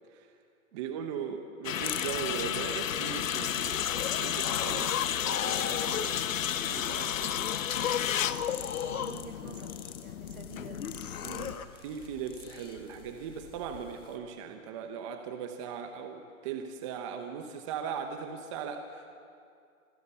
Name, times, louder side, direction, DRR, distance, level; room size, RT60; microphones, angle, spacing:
voice 1, 0.7-7.5 11.2-19.1, right 7 dB, 20° right, 6 dB, 1.0 m, -39 dB
sound 1, 1.6-11.5, left 10 dB, 60° left, 1.0 m, -33 dB
sound 2, 1.8-14.1, left 10 dB, 15° left, 0.7 m, -46 dB
sound 3, 3.7-6.2 6.6-9.2 10.8-11.6, left 8 dB, 80° left, 1.5 m, -36 dB
voice 2, 8.8-10.9 12.4-12.5, right 5 dB, 70° right, 3 dB, 3.5 m, -49 dB
26.0 x 21.5 x 7.0 m, 2.3 s
hypercardioid pair, 160°, 44 cm